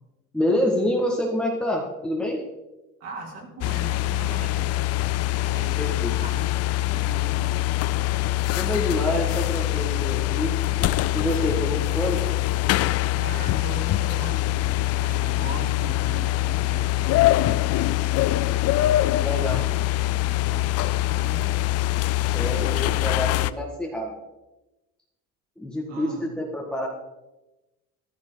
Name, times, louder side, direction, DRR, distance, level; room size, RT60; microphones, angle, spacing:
voice 1, 0.3-2.4 5.8-6.1 8.6-12.2 19.2-19.6 22.3-24.2 25.6-26.9, left 1 dB, 5° left, -2 dB, 1.8 m, -27 dB
voice 2, 3.0-4.9 5.5-6.5 6.8-7.7 13.2-18.1 19.2-21.5 25.9-26.3, right 3 dB, 50° right, -2 dB, 4.6 m, -40 dB
sound 1, 3.6-23.5, left 15 dB, 50° left, 0.5 m, -24 dB
14.5 x 14.0 x 4.0 m, 1.0 s
cardioid pair, 155°, 31 cm